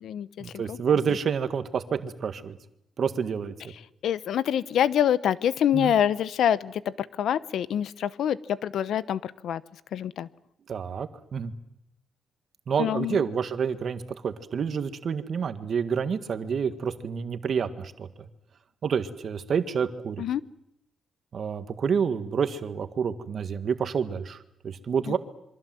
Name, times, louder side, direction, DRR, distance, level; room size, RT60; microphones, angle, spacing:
voice 1, 0.4-2.6 3.0-3.5 5.7-5.9 10.7-11.5 12.7-18.1 18.8-20.2 21.3-25.2, right 6 dB, 45° right, 10 dB, 1.7 m, -28 dB
voice 2, 4.0-9.6 9.9-10.3 12.8-13.2 20.2-20.4 25.1-25.2, left 10 dB, 70° left, 17 dB, 0.9 m, -26 dB
27.5 x 24.0 x 7.7 m, 0.78 s
wide cardioid pair, 180°, 0 cm